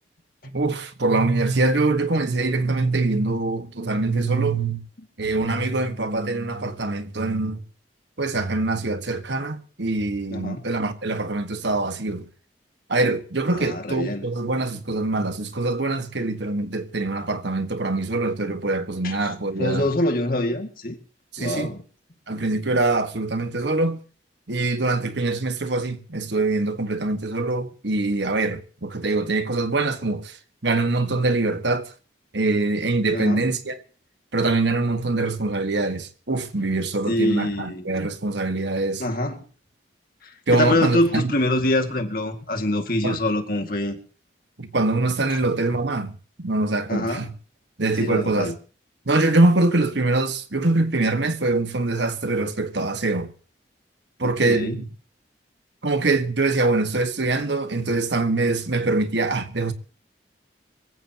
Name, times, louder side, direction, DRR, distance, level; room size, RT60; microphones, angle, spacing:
voice 1, 0.5-4.8 5.2-7.6 8.2-12.3 12.9-19.9 21.3-21.7 22.3-24.0 24.5-30.4 30.6-31.9 32.3-33.8 34.3-39.0 40.5-41.3 43.0-43.2 44.6-47.3 47.8-48.5 49.0-53.3 54.2-54.9 55.8-59.7, right 2 dB, 70° right, 1.6 m, -24 dB
voice 2, 10.3-10.7 13.5-14.3 19.0-19.3 19.6-21.0 21.4-21.8 33.1-33.4 37.1-37.8 39.0-39.4 40.2-44.0 45.3-45.4 46.9-47.3 48.0-48.5 54.2-54.8, left 1 dB, 50° left, 2.3 m, -25 dB
24.5 x 15.5 x 3.0 m
head